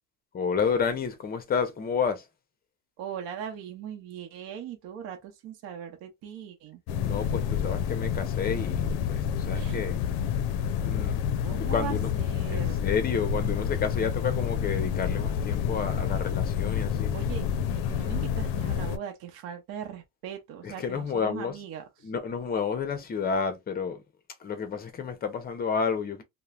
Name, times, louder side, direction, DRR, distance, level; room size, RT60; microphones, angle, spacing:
voice 1, 0.3-2.2 7.0-10.1 10.8-11.2 11.5-12.1 12.5-17.1 20.6-21.6 22.0-24.0 24.4-26.2, left 6 dB, 25° left, 0.5 m, -30 dB
voice 2, 3.0-6.8 9.5-9.8 11.4-12.9 17.1-17.4 17.9-22.1, right 9 dB, 65° right, 0.8 m, -40 dB
sound 1, 6.9-19.0, left 8 dB, 75° left, 0.5 m, -28 dB
3.0 x 2.1 x 2.3 m
cardioid pair, 140°, 40 cm